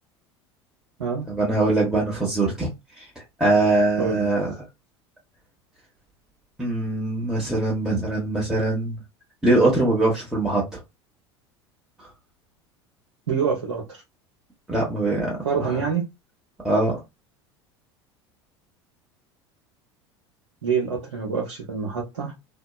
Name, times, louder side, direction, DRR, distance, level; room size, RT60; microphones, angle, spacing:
voice 1, 1.3-2.7 3.0-3.1 3.4-4.5 6.6-9.0 9.4-10.6 14.7-15.8 16.6-17.0, right 2 dB, 5° right, 1.0 m, -22 dB
voice 2, 4.0-4.3 13.3-14.0 15.4-16.0 20.6-22.3, right 6 dB, 85° right, 0.7 m, -26 dB
2.8 x 2.2 x 2.2 m
hypercardioid pair, 75°, 15 cm